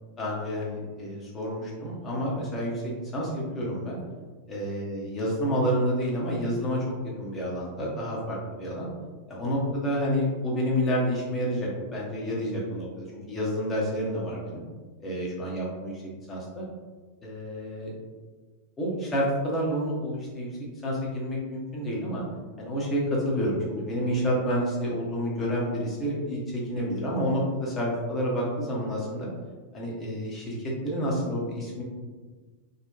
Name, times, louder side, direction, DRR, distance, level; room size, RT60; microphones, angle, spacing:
voice 1, 0.2-4.0 4.5-6.8 7.2-8.9 9.3-14.6 15.0-15.9 16.3-16.6 17.2-17.9 18.8-20.5 20.8-22.2 22.6-29.3 29.7-30.6 30.8-31.8, equal, 20° left, -4 dB, 0.7 m, -29 dB
2.7 x 2.1 x 2.2 m, 1.4 s
figure-of-eight pair, 90°, 0 cm